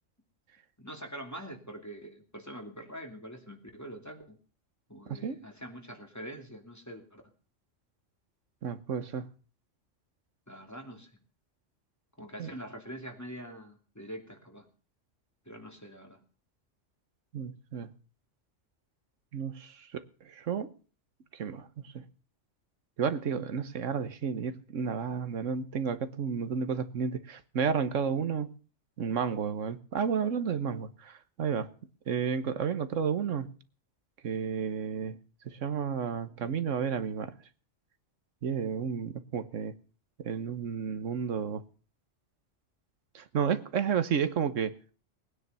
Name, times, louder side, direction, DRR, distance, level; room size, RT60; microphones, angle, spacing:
voice 1, 0.8-4.4 4.9-7.2 10.5-11.1 12.2-14.7 15.5-16.2, equal, 15° left, 2.8 m, -44 dB
voice 2, 5.1-5.4 8.6-9.3 12.4-12.5 17.3-17.9 19.3-20.7 21.3-22.1 23.0-28.5 29.0-31.7 32.1-33.5 34.2-35.2 35.4-37.3 38.4-39.7 40.2-41.6 43.1-44.8, right 6 dB, 80° right, 1.4 m, -32 dB
19.5 x 9.8 x 6.8 m
omnidirectional pair, 1.3 m